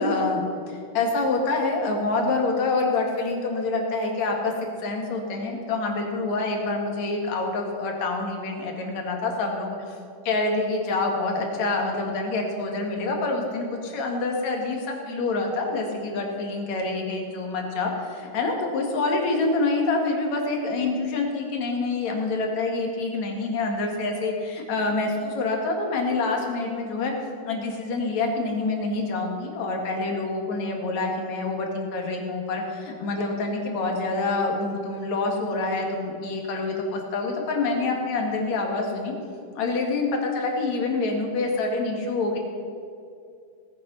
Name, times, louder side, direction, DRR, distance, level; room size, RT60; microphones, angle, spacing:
voice 1, 0.0-4.5 4.8-10.0 10.2-27.1 27.5-39.1 39.6-42.4, left 3 dB, 65° left, 1 dB, 3.1 m, -26 dB
18.0 x 9.9 x 5.6 m, 2.4 s
omnidirectional pair, 3.6 m